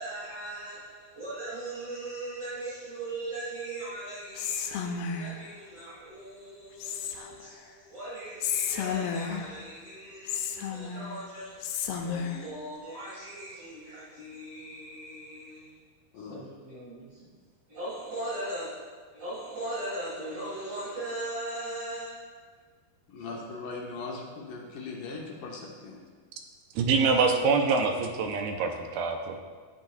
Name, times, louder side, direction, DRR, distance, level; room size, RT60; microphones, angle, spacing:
voice 1, 0.0-15.8 16.1-17.3 17.7-18.7 19.1-22.2 23.2-23.4, right 1 dB, 45° right, -9 dB, 2.4 m, -39 dB
Whispering, 4.4-5.5 6.8-7.5 8.4-9.6 10.3-11.2 11.6-12.5, left 7 dB, 85° left, 2.6 m, -32 dB
voice 2, 23.1-26.0, left 3 dB, 70° left, -1 dB, 2.3 m, -39 dB
voice 3, 26.8-29.4, right 4 dB, 90° right, 4 dB, 2.6 m, -25 dB
13.0 x 7.9 x 2.4 m, 1.5 s
omnidirectional pair, 4.5 m